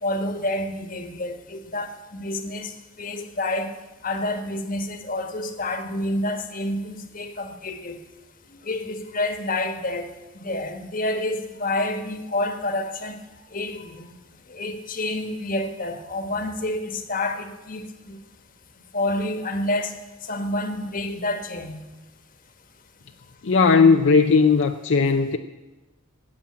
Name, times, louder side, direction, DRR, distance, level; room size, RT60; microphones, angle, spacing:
voice 1, 0.0-2.7 3.0-3.8 4.0-8.0 8.5-10.1 10.3-13.2 13.5-14.1 14.5-18.2 18.9-19.9 20.2-21.8, left 1 dB, 40° left, 1.3 m, -28 dB
voice 2, 23.4-25.4, left 5 dB, 60° left, 0.6 m, -17 dB
14.5 x 8.8 x 8.6 m
head